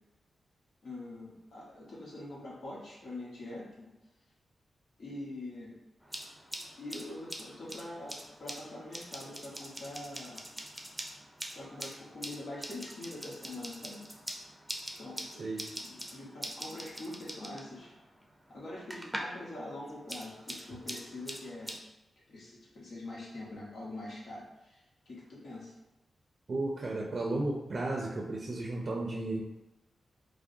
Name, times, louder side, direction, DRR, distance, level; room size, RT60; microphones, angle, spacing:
voice 1, 0.8-3.9 5.0-5.8 6.8-10.4 11.5-14.0 15.0-15.4 15.7-17.9 18.5-21.8 22.3-25.7, left 2 dB, 75° left, -6 dB, 1.2 m, -44 dB
sound 1, 6.0-19.5 19.7-21.8, equal, 10° right, 0.6 m, -44 dB
voice 2, 26.5-29.4, right 2 dB, 55° right, -1 dB, 0.5 m, -34 dB
4.6 x 2.2 x 2.7 m, 0.97 s
cardioid pair, 65°, 0 cm